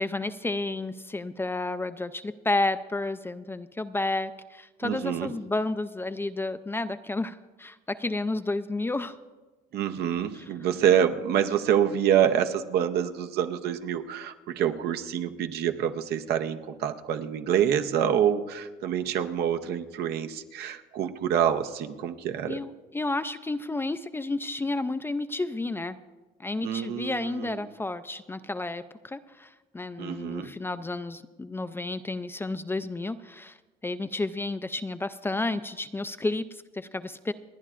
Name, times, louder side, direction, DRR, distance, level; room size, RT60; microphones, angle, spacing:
voice 1, 0.0-9.2 10.3-10.4 22.5-26.0 26.4-33.6 33.8-37.3, left 2 dB, 15° left, 11 dB, 0.4 m, -31 dB
voice 2, 4.8-5.3 9.7-22.6 26.6-27.6 30.0-30.5, right 9 dB, 75° right, 8 dB, 0.8 m, -26 dB
29.5 x 9.9 x 2.5 m, 1.2 s
cardioid pair, 110°, 17 cm